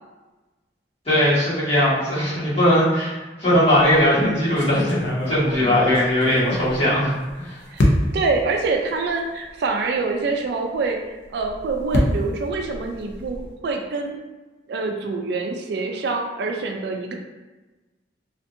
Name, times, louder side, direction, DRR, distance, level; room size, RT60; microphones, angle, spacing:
voice 1, 1.0-7.6, equal, 35° left, -11 dB, 1.4 m, -19 dB
sound 1, 3.7-4.0 4.6-7.3 7.8-8.3 9.1-9.2 9.5-9.6 11.2-13.6, left 1 dB, 80° left, 0.5 m, -25 dB
voice 2, 8.1-11.0 11.3-14.2 14.7-17.1, right 3 dB, 65° right, 3 dB, 0.3 m, -25 dB
2.6 x 2.5 x 2.5 m, 1.2 s
head